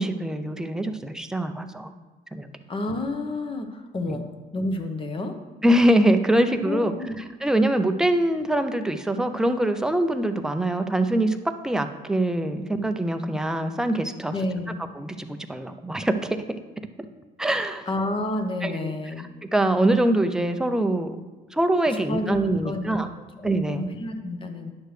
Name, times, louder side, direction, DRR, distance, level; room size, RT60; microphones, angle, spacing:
voice 1, 0.0-1.9 2.3-2.5 4.1-4.2 5.6-6.9 7.4-11.4 11.6-14.3 14.9-16.6 17.4-17.9 18.6-18.9 19.4-21.2 21.5-23.1 23.4-23.9, right 1 dB, 5° right, 7 dB, 0.5 m, -23 dB
voice 2, 2.7-4.2 4.5-5.3 6.6-7.2 14.3-14.7 17.9-19.3 21.9-22.4 22.6-24.7, left 2 dB, 30° left, 5 dB, 0.9 m, -30 dB
10.0 x 6.5 x 3.3 m, 1.2 s
cardioid pair, 110°, 17 cm